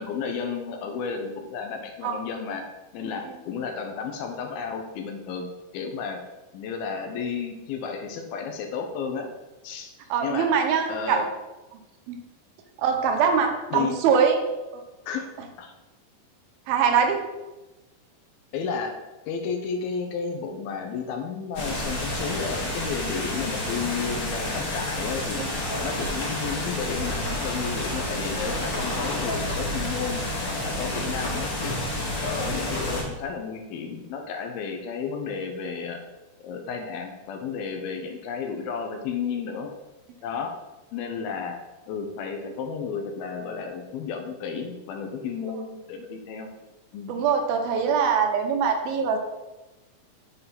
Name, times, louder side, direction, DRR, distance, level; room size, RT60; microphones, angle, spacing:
voice 1, 0.0-2.7 2.9-6.2 6.5-9.3 9.6-9.9 10.2-10.5 10.9-11.3 13.7-13.9 15.1-15.7 18.5-19.0 19.3-25.4 25.8-31.8 32.2-36.0 36.4-39.7 40.2-40.5 40.9-41.6 41.9-46.5 46.9-47.1, left 6 dB, 80° left, 4 dB, 2.6 m, -32 dB
voice 2, 10.1-11.2 12.1-12.2 12.8-14.4 16.7-17.2 25.4-25.5 47.1-49.2, right 6 dB, 80° right, 4 dB, 2.6 m, -23 dB
sound 1, 21.5-33.0, left 1 dB, 50° left, 1.4 m, -29 dB
7.9 x 3.9 x 5.7 m, 1.1 s
omnidirectional pair, 4.4 m